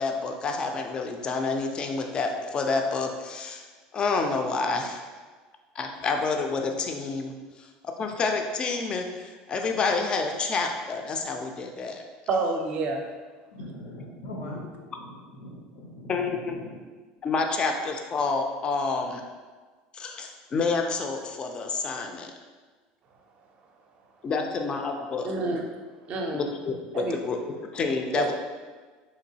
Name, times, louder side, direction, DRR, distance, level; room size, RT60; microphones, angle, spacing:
voice 1, 0.0-3.6 3.9-5.0 5.8-7.3 7.6-7.7 8.0-12.0 16.1-16.6 17.2-19.2 19.9-22.3 24.2-25.3 26.3-27.4 27.7-28.3, left 4 dB, 25° left, 4 dB, 0.3 m, -28 dB
voice 2, 12.3-13.0 25.2-25.6 26.1-26.5 26.9-27.2 28.1-28.3, right 3 dB, 40° right, 3 dB, 0.5 m, -28 dB
voice 3, 13.5-16.8, left 1 dB, 85° left, 0 dB, 0.7 m, -41 dB
3.6 x 3.0 x 2.7 m, 1.4 s
supercardioid pair, 135°, 3 cm